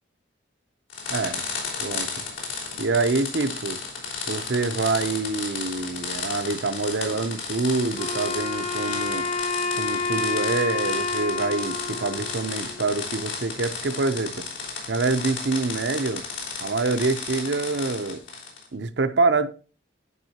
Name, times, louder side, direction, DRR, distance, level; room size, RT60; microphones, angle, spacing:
sound 1, 0.9-18.7, left 5 dB, 80° left, 3.5 m, -33 dB
voice 1, 1.1-1.4 1.8-2.1 2.8-3.8 4.3-9.3 9.8-14.4 14.9-16.2 16.6-18.2 18.7-19.5, right 3 dB, 65° right, 0.7 m, -26 dB
Wind instrument woodwind instrument, 7.9-13.1, left 3 dB, 30° left, 1.0 m, -29 dB
11.0 x 5.4 x 2.9 m
head